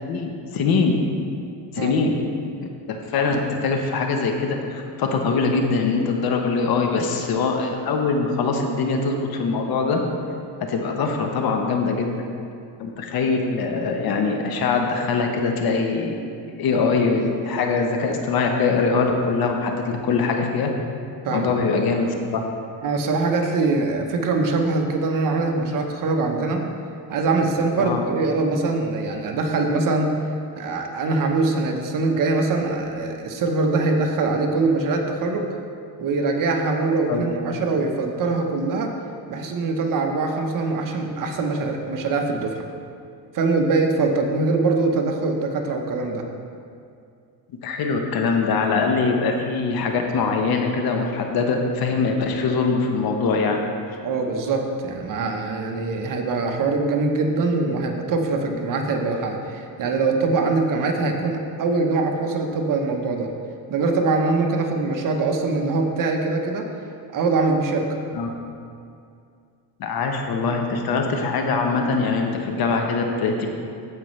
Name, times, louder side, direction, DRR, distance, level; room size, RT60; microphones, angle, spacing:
voice 1, 0.1-1.0 1.7-2.2 2.9-10.0 10.7-12.1 12.8-16.2 16.6-20.7 21.3-22.4 27.8-28.0 37.1-37.2 47.6-53.6 68.1-68.3 69.8-73.5, left 4 dB, 50° left, 3 dB, 1.0 m, -22 dB
voice 2, 22.8-26.6 27.1-30.1 30.6-35.5 36.0-38.9 39.3-42.7 43.3-46.2 54.0-63.3 63.7-66.7 67.1-67.9, right 3 dB, 45° right, 3 dB, 1.1 m, -23 dB
14.5 x 5.3 x 3.2 m, 2.4 s
cardioid pair, 120°, 45 cm